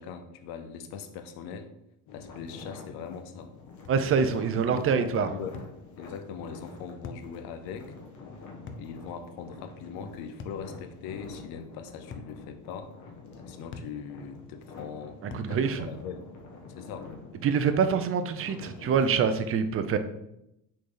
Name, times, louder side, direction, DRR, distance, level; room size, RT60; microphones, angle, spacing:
voice 1, 0.0-1.7 2.1-3.5 4.2-5.6 6.0-7.9 8.8-12.9 13.3-16.3 16.8-17.1, left 6 dB, 70° left, 8 dB, 0.9 m, -41 dB
sound 1, 2.1-19.2, left 4 dB, 50° left, 1.5 m, -47 dB
sound 2, 3.8-4.1 5.5-5.8 7.0-7.3 8.7-8.9 10.4-10.7 12.1-12.4 13.7-14.0 15.3-15.6, left 4 dB, 30° left, 0.6 m, -42 dB
voice 2, 3.9-5.3 15.3-15.9 17.4-20.0, right 6 dB, 35° right, 9 dB, 0.7 m, -25 dB
6.3 x 4.2 x 3.9 m, 0.84 s
supercardioid pair, 105°, 39 cm